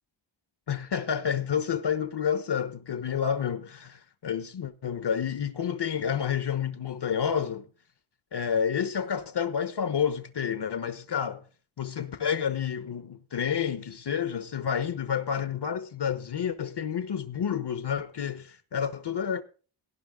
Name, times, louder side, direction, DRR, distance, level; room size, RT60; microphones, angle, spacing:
voice 1, 0.7-7.6 8.3-11.4 11.8-19.4, left 8 dB, 60° left, 1.2 m, -29 dB
18.0 x 11.0 x 3.8 m
wide cardioid pair, 155°, 47 cm